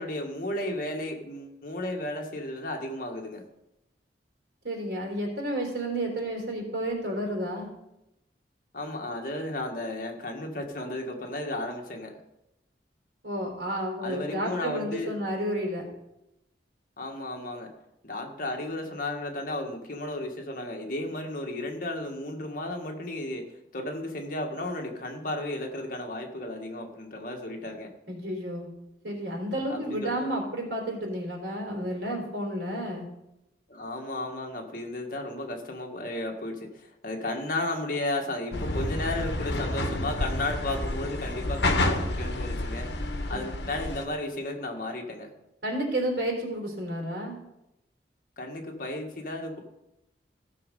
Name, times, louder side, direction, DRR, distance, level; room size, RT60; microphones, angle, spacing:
voice 1, 0.0-3.4 8.7-12.2 14.0-15.1 17.0-17.7 18.0-27.9 29.7-30.3 33.7-42.9 43.3-45.3 48.4-49.6, left 1 dB, 50° left, 2 dB, 1.8 m, -34 dB
voice 2, 4.6-7.7 13.2-15.9 28.1-28.7 29.0-33.1 43.3-43.4 45.6-47.3, right 1 dB, 80° right, 0 dB, 3.8 m, -31 dB
sound 1, 38.5-44.1, left 1 dB, 70° left, 1.3 m, -29 dB
15.5 x 6.5 x 5.4 m, 0.89 s
head